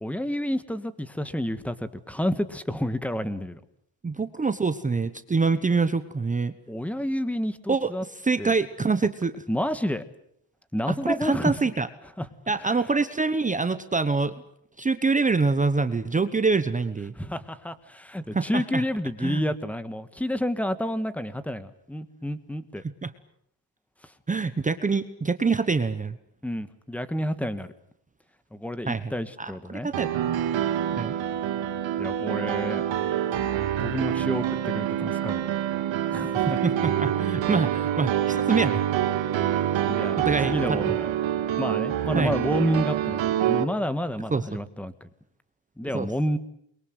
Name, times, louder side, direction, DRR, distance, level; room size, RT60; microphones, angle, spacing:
voice 1, 0.0-3.6 6.7-8.0 8.4-8.5 9.5-10.0 10.7-11.6 12.2-12.3 12.6-12.8 17.2-22.8 26.4-27.7 28.5-29.9 32.0-32.8 33.8-35.4 36.1-36.6 39.9-41.1 41.6-45.1 45.8-46.4, equal, 5° left, 12 dB, 1.5 m, -29 dB
voice 2, 4.0-6.5 7.7-7.9 8.2-9.4 11.0-11.9 12.5-14.3 14.8-17.1 18.3-18.8 19.2-19.4 23.0-23.1 24.3-26.2 28.9-29.1 29.4-30.4 30.9-31.1 36.6-38.8 40.2-41.0 42.1-42.3 44.3-44.4 45.9-46.1, right 4 dB, 15° right, 10 dB, 1.0 m, -25 dB
Piano, 29.9-43.6, right 11 dB, 80° right, 2.5 m, -26 dB
29.0 x 22.5 x 8.0 m, 0.70 s
cardioid pair, 165°, 45 cm